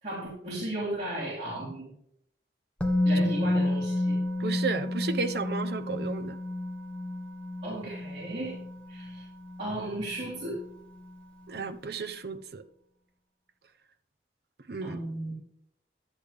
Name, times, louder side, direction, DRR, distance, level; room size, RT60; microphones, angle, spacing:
voice 1, 0.0-1.9 3.0-4.2 7.6-8.6 8.9-9.3 9.6-10.6 14.8-15.4, right 1 dB, 35° right, -8 dB, 3.3 m, -35 dB
Musical instrument, 2.8-10.7 11.0-11.2, left 1 dB, 5° left, 1.0 m, -31 dB
voice 2, 4.4-6.4 11.5-12.6 14.7-15.0, right 4 dB, 60° right, 7 dB, 0.7 m, -33 dB
11.5 x 8.5 x 3.5 m, 0.71 s
head